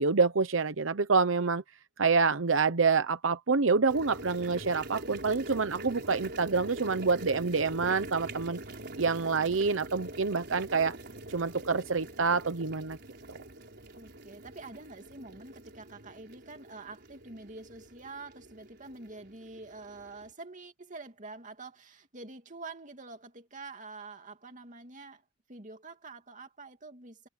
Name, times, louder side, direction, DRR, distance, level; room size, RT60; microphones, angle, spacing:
voice 1, 0.0-1.6 2.0-8.6 9.0-10.9 11.3-13.0, right 4 dB, 85° right, 0.9 m, -27 dB
sound 1, 3.9-20.3, right 1 dB, 60° right, 4.8 m, -44 dB
voice 2, 13.9-25.2 25.5-27.3, right 3 dB, 40° right, 2.7 m, -46 dB
head